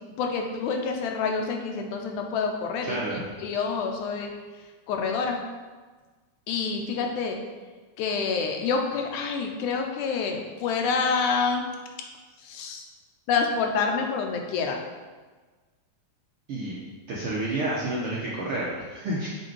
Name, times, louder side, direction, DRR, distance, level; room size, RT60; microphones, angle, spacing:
voice 1, 0.2-3.0 3.4-4.3 4.9-5.4 6.5-7.4 8.0-11.7 12.4-12.8 13.3-14.8, left 5 dB, 80° left, 3 dB, 2.1 m, -27 dB
voice 2, 2.8-3.2 16.5-16.7 17.1-19.3, right 1 dB, 70° right, -5 dB, 1.3 m, -29 dB
6.4 x 5.3 x 4.6 m, 1.4 s
omnidirectional pair, 3.6 m